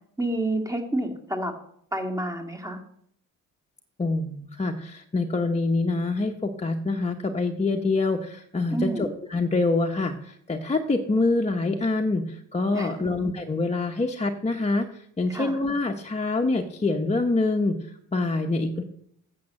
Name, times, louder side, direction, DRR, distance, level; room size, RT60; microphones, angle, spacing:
voice 1, 0.2-1.5 1.9-2.8 8.7-9.1 12.7-13.1 15.3-15.6, right 1 dB, 10° right, 5 dB, 2.0 m, -29 dB
voice 2, 4.0-18.8, left 3 dB, 20° left, 2 dB, 1.0 m, -26 dB
8.5 x 6.9 x 7.5 m, 0.68 s
cardioid pair, 90°, 30 cm